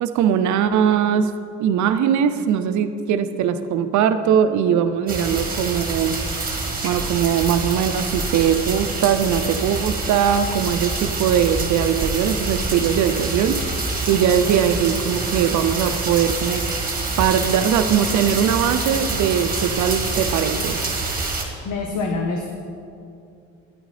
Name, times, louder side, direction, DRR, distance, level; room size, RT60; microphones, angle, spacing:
voice 1, 0.0-1.3 1.6-6.2 6.8-13.6 14.1-16.6 17.2-20.8, right 8 dB, 70° right, 9 dB, 0.5 m, -20 dB
sound 1, 5.1-21.4, right 3 dB, 30° right, 1.6 m, -26 dB
voice 2, 21.6-22.5, left 3 dB, 75° left, 3 dB, 0.8 m, -25 dB
9.8 x 9.1 x 3.3 m, 2.6 s
cardioid pair, 90°, 30 cm